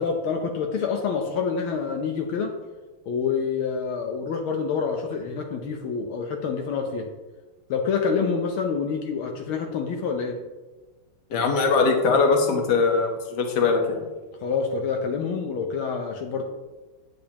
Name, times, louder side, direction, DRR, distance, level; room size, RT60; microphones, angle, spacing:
voice 1, 0.0-2.5 3.1-7.1 7.7-10.4 14.4-16.4, left 5 dB, 75° left, 2 dB, 1.6 m, -27 dB
voice 2, 11.3-14.0, left 4 dB, 55° left, 3 dB, 1.7 m, -21 dB
9.8 x 8.5 x 2.9 m, 1.2 s
omnidirectional pair, 2.4 m